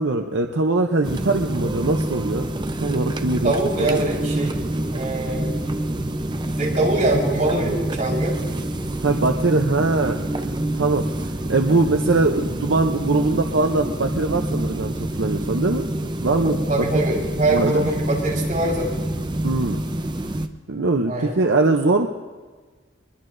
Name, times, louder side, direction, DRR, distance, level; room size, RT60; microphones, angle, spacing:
voice 1, 0.0-2.4 2.8-3.5 3.8-4.1 9.0-10.2 10.7-11.1 11.5-16.6 17.5-17.9 19.4-19.8 20.7-22.1, right 3 dB, 75° right, 4 dB, 0.7 m, -21 dB
sound 1, 1.0-20.5, right 1 dB, 25° right, 0.6 m, -26 dB
voice 2, 3.4-4.6 4.9-5.6 6.6-8.4 16.7-18.9 21.1-21.3, right 2 dB, 40° right, -3 dB, 4.5 m, -23 dB
23.5 x 21.5 x 2.6 m, 1.4 s
head